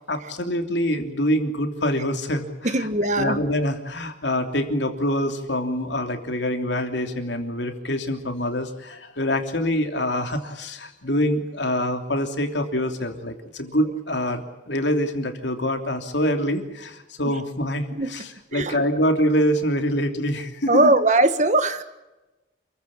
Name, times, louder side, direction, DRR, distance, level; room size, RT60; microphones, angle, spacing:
voice 1, 0.1-2.9 3.2-20.9, equal, 70° left, 5 dB, 3.1 m, -25 dB
voice 2, 2.7-3.4 17.9-18.1 18.5-18.8 20.7-21.8, right 2 dB, 40° right, 10 dB, 1.5 m, -20 dB
28.5 x 15.0 x 8.9 m, 1.0 s
head